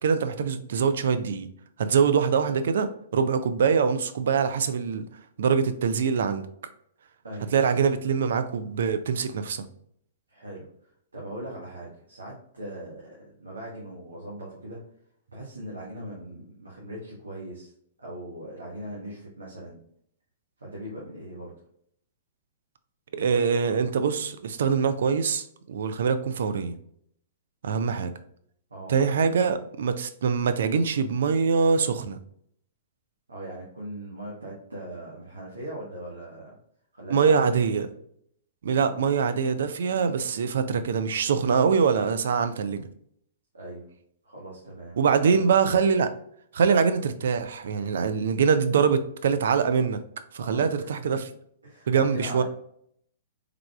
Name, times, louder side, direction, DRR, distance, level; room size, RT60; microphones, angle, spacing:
voice 1, 0.0-1.5 1.8-5.0 5.4-6.5 7.5-9.6 23.1-26.7 27.6-28.1 28.9-32.2 37.1-37.9 38.6-42.9 45.0-46.1 46.5-50.0 50.3-51.2 51.9-52.4, right 6 dB, 65° right, 10 dB, 0.4 m, -24 dB
voice 2, 10.3-14.8 15.3-17.7 18.0-19.8 20.6-21.5 28.7-29.0 33.3-36.5 36.9-37.7 38.7-39.0 43.5-43.8 44.2-45.6 50.4-51.2 51.6-52.4, right 1 dB, 85° right, -4 dB, 1.0 m, -40 dB
3.5 x 3.3 x 2.3 m, 0.68 s
figure-of-eight pair, 110°, 0 cm